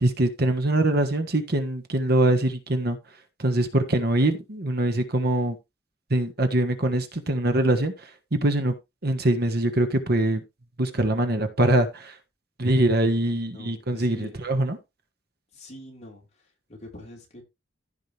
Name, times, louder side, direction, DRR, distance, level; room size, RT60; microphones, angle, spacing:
voice 1, 0.0-3.0 3.4-5.6 6.1-7.9 8.3-8.7 9.0-10.4 10.8-12.1 12.6-14.8, right 1 dB, 60° right, 1.5 m, -23 dB
voice 2, 13.3-14.4 15.5-16.3 16.7-17.4, left 1 dB, 40° left, 4.2 m, -44 dB
15.0 x 5.2 x 3.4 m
head